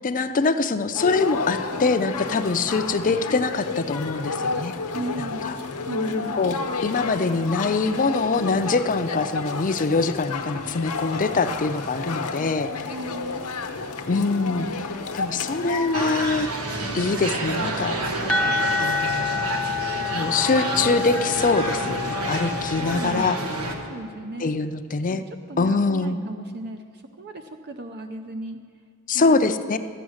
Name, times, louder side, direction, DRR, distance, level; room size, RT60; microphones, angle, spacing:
voice 1, 0.0-4.7 5.4-5.5 6.4-12.7 14.1-14.7 15.1-16.5 16.9-18.0 18.8-19.3 20.0-23.4 24.4-25.2 25.6-26.2 29.1-29.8, left 3 dB, 35° left, 9 dB, 0.5 m, -23 dB
sound 1, 0.9-16.3, left 4 dB, 90° left, 0.9 m, -31 dB
voice 2, 4.9-5.5 5.9-6.3 12.8-13.4 22.5-23.3 23.9-24.6 25.3-28.6 29.1-29.8, right 1 dB, 45° right, 7 dB, 0.5 m, -36 dB
sound 2, 15.9-23.7, right 2 dB, 85° right, 1.4 m, -29 dB
sound 3, 18.3-23.9, left 5 dB, 5° left, 0.9 m, -28 dB
13.0 x 9.0 x 6.4 m, 2.1 s
head